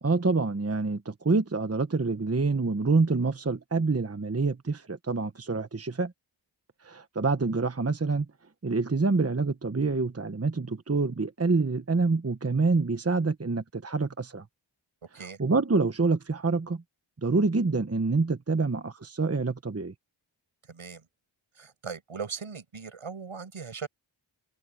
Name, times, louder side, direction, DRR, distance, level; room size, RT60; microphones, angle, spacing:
voice 1, 0.0-6.1 6.8-8.3 8.6-14.4 15.4-16.8 17.2-19.9, right 3 dB, 30° right, 1.2 m, -26 dB
voice 2, 20.6-21.1 21.5-23.9, right 5 dB, 85° right, 7.9 m, -39 dB
open air
wide cardioid pair, 60°, 49 cm